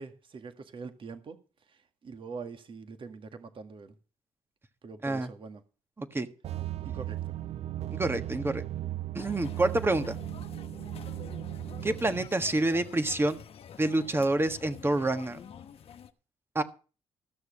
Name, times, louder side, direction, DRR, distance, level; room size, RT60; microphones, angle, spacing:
voice 1, 0.0-1.4 2.0-4.0 4.8-5.6 6.9-7.2, right 4 dB, 50° right, 1.8 m, -43 dB
voice 2, 6.0-6.3 7.9-8.6 9.1-10.2 11.8-13.4 13.8-15.4 16.5-16.6, right 2 dB, 20° right, 1.5 m, -27 dB
sound 1, 6.4-12.3, right 13 dB, 70° right, 0.6 m, -37 dB
sound 2, 9.2-16.1, left 7 dB, 60° left, 1.1 m, -47 dB
14.5 x 6.7 x 6.5 m
cardioid pair, 85°, 11 cm